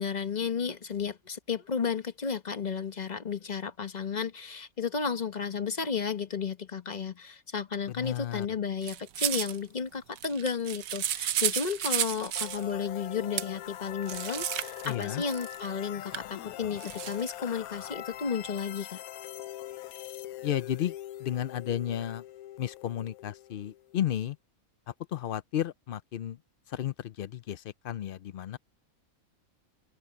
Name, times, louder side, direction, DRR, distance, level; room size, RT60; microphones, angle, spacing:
voice 1, 0.0-19.0, left 6 dB, 35° left, 1.0 m, -33 dB
voice 2, 8.0-8.5 14.8-15.2 20.4-20.9 21.2-22.2 22.6-24.4 25.1-26.4 26.7-28.6, left 11 dB, 65° left, 0.5 m, -33 dB
sound 1, 8.8-9.6 10.1-12.6 13.4-13.5 14.0-15.7 16.1-16.2 16.8-17.3, right 11 dB, 75° right, 1.2 m, -32 dB
sound 2, 12.3-24.1, left 13 dB, 85° left, 1.1 m, -42 dB
open air
omnidirectional pair, 1.5 m